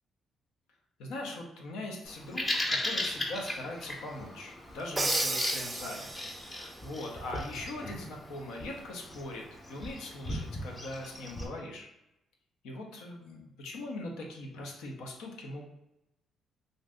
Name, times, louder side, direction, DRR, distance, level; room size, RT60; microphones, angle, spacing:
voice 1, 1.0-6.1 6.4-11.9 12.6-15.7, left 2 dB, 90° left, 0 dB, 0.7 m, -41 dB
Bird vocalization bird call bird song, 2.1-11.5, left 1 dB, 25° left, 0.7 m, -37 dB
Crash cymbal, 5.0-6.6, right 2 dB, 20° right, 0.4 m, -33 dB
2.6 x 2.5 x 3.5 m, 0.87 s
cardioid pair, 90°, 0 cm